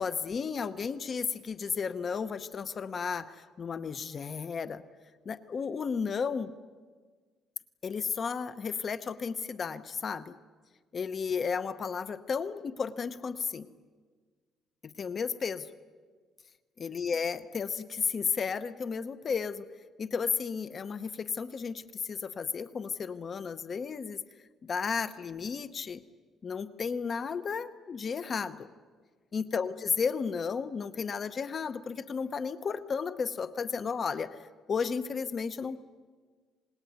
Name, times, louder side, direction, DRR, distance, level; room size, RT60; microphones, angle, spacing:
voice 1, 0.0-4.8 5.2-6.5 7.8-10.4 10.9-13.7 14.8-15.7 16.8-19.7 20.0-24.2 24.6-26.0 26.4-28.7 29.3-34.4 34.7-35.8, left 6 dB, 35° left, 12 dB, 0.9 m, -33 dB
26.5 x 20.5 x 9.4 m, 1.5 s
cardioid pair, 135°, 0 cm